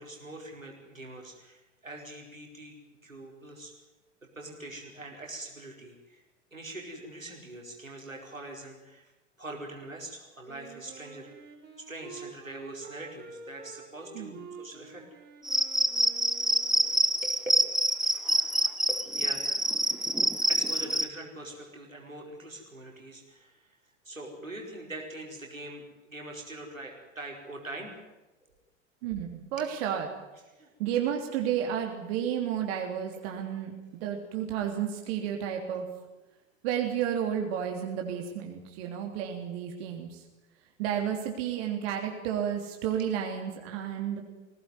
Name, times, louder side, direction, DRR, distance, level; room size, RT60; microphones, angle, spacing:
voice 1, 0.0-2.7 3.0-3.7 4.2-6.2 6.5-9.1 9.4-11.3 11.8-15.1 16.6-17.4 18.0-18.4 18.9-19.7 20.5-23.8 24.0-27.9 30.6-30.7 33.1-33.3, right 2 dB, 85° right, 0 dB, 4.7 m, -43 dB
Wind instrument woodwind instrument, 10.4-17.1, right 4 dB, 25° right, 4.3 m, -49 dB
voice 2, 14.1-14.5 29.0-30.1 30.8-35.9 36.6-40.2 40.8-44.2, right 9 dB, 50° right, 2 dB, 3.2 m, -32 dB
Cricket, 15.4-21.1, right 1 dB, ahead, 0.8 m, -26 dB
21.0 x 17.5 x 9.5 m, 1.1 s
figure-of-eight pair, 85°, 39 cm